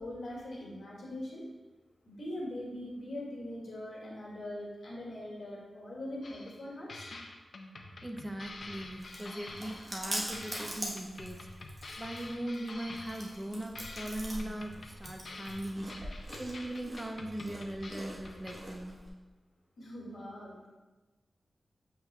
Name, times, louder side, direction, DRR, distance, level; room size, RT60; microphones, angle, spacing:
voice 1, 0.0-1.4 2.1-7.1 19.8-20.7, left 1 dB, 70° left, -4 dB, 1.9 m, -41 dB
sound 1, 6.2-6.6 6.9-10.1 10.3-13.5 13.7-18.5, left 2 dB, 55° left, 0.6 m, -47 dB
voice 2, 8.0-19.0, right 1 dB, 15° right, 3 dB, 0.6 m, -40 dB
Chewing mastication, 8.4-19.1, right 1 dB, 30° right, 1.1 m, -43 dB
7.1 x 5.7 x 2.3 m, 1.2 s
wide cardioid pair, 125°, 0 cm